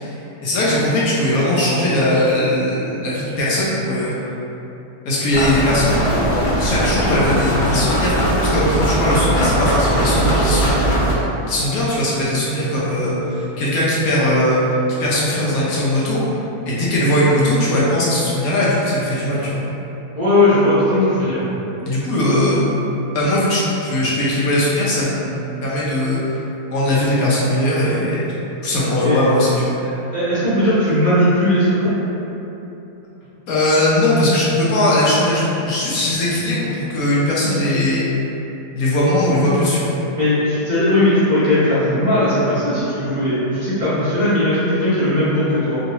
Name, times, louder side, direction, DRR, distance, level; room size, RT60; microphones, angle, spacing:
voice 1, 0.0-4.2 5.1-6.0 6.6-8.2 8.5-10.9 11.5-16.2 16.7-19.6 21.8-22.7 23.1-25.3 25.6-26.4 26.7-28.3 28.6-29.7 33.5-38.1 38.7-39.9, left 1 dB, 70° left, -7 dB, 1.0 m, -19 dB
sound 1, 5.3-11.1, right 1 dB, 85° left, 1.4 m, -19 dB
voice 2, 20.1-21.5 29.0-29.2 29.8-31.9 40.1-45.8, left 1 dB, 35° right, -15 dB, 0.8 m, -18 dB
3.1 x 2.8 x 2.6 m, 3.0 s
omnidirectional pair, 1.7 m